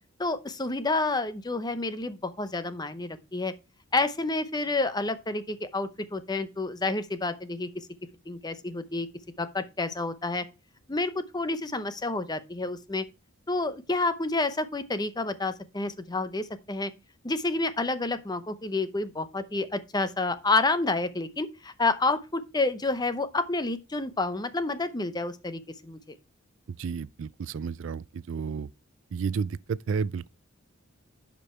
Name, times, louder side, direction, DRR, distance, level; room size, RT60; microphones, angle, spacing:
voice 1, 0.2-3.5 3.9-7.7 8.3-9.1 9.4-10.4 10.9-13.0 13.5-16.9 17.2-26.0, left 3 dB, 20° left, 0.7 m, -29 dB
voice 2, 26.8-28.7 29.1-30.3, right 5 dB, 65° right, 0.4 m, -31 dB
11.0 x 5.3 x 4.3 m
head